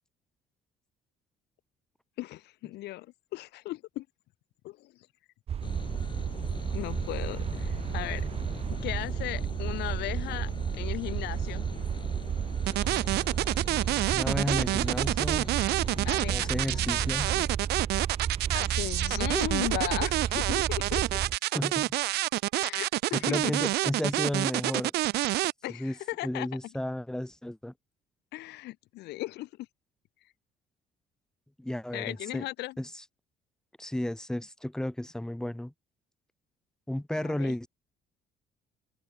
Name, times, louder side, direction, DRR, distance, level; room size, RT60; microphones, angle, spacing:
voice 1, 2.2-4.1 4.6-5.1 6.7-8.3 8.7-11.7 16.0-16.8 18.5-21.0 22.6-23.7 25.6-26.5 28.3-29.7 31.9-32.8 37.2-37.5, left 17 dB, 80° left, 2.1 m, -37 dB
sound 1, 5.5-21.4, right 8 dB, 35° right, 0.6 m, -33 dB
sound 2, 5.6-17.5, left 5 dB, 25° left, 1.0 m, -42 dB
sound 3, 12.7-25.5, right 17 dB, 75° right, 0.6 m, -28 dB
voice 2, 14.1-15.5 16.0-17.3 21.5-21.9 23.1-24.9 25.8-25.9 26.2-27.7 31.6-32.5 32.8-33.0 33.8-35.7 36.9-37.7, left 1 dB, 5° left, 1.8 m, -33 dB
cardioid pair, 110°, 17 cm